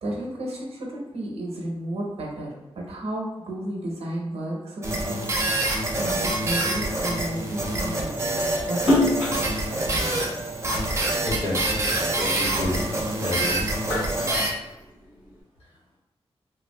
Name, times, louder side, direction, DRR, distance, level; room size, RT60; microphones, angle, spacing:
voice 1, 0.0-2.5 2.7-5.2 5.9-9.2, right 1 dB, 75° right, -2 dB, 0.8 m, -33 dB
sound 1, 4.8-14.5, right 1 dB, 30° right, 0.5 m, -26 dB
Splash splatter, 8.8-11.3 11.8-13.2 13.6-15.3, left 2 dB, 55° left, 1.3 m, -27 dB
voice 2, 11.2-11.7 12.0-12.8 13.2-13.6 14.3-14.4, left 1 dB, 80° left, -8 dB, 1.4 m, -30 dB
3.4 x 2.3 x 2.2 m, 0.98 s
wide cardioid pair, 125°, 10 cm